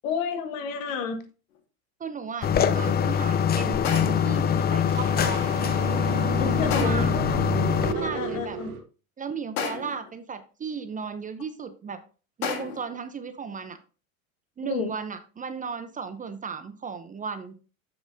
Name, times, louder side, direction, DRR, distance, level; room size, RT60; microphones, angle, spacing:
voice 1, 0.0-1.2 6.4-7.5 7.9-8.7 14.6-14.9, left 6 dB, 70° left, 1.6 m, -31 dB
sound 1, 1.5-1.6 3.8-4.4 6.7-7.3 9.6-10.1 12.4-13.0, left 6 dB, 90° left, 1.7 m, -32 dB
voice 2, 2.0-5.5 6.6-7.1 7.8-8.6 9.2-12.0 12.4-13.8 14.6-17.5, right 6 dB, 20° right, 0.7 m, -35 dB
sound 2, 2.4-7.9, left 8 dB, 25° left, 0.5 m, -24 dB
sound 3, 4.9-8.8, right 7 dB, 50° right, 1.7 m, -33 dB
7.6 x 6.8 x 2.7 m
hypercardioid pair, 95°, 42 cm